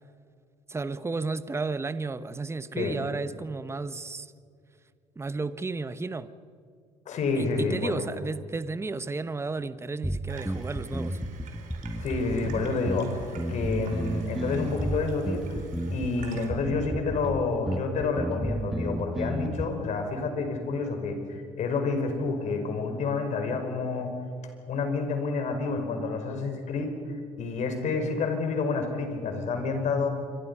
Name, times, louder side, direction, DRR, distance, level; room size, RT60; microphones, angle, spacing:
voice 1, 0.7-4.3 5.2-6.3 7.4-11.2, right 3 dB, 20° right, 1.0 m, -33 dB
voice 2, 7.1-8.1 12.0-15.6 15.9-24.1 24.7-30.1, left 4 dB, 55° left, 5.3 m, -29 dB
sound 1, 10.0-19.6, equal, ahead, 1.6 m, -32 dB
Water tap faucet / Sink (filling or washing), 10.3-16.5, right 6 dB, 65° right, 4.2 m, -47 dB
28.5 x 23.5 x 5.6 m
hypercardioid pair, 65°, 14 cm